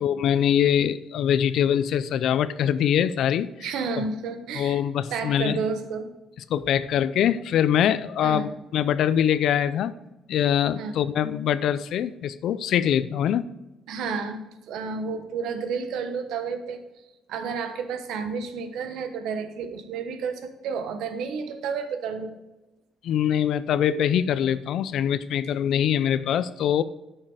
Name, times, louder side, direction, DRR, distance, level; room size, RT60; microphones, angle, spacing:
voice 1, 0.0-3.5 4.0-4.1 4.5-5.6 6.5-9.9 10.3-13.5 23.0-26.8, left 9 dB, 65° left, 15 dB, 0.4 m, -23 dB
voice 2, 3.6-4.8 5.1-6.1 8.2-8.5 10.8-10.9 13.9-14.4 14.7-16.8 17.3-22.4, right 5 dB, 80° right, 8 dB, 1.1 m, -31 dB
9.9 x 6.6 x 4.9 m, 0.99 s
cardioid pair, 145°, 0 cm